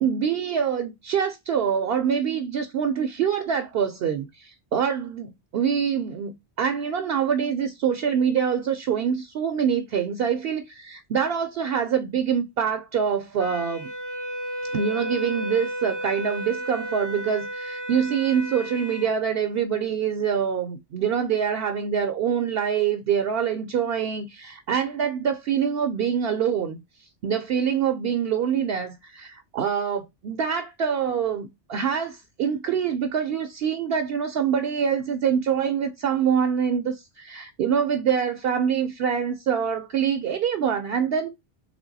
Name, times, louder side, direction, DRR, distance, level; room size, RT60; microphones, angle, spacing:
voice 1, 0.0-13.9 14.7-26.8 27.2-41.3, right 7 dB, 65° right, 0.7 m, -25 dB
Wind instrument woodwind instrument, 13.4-19.1, right 1 dB, 20° left, 0.5 m, -33 dB
3.4 x 3.2 x 3.9 m
omnidirectional pair, 1.2 m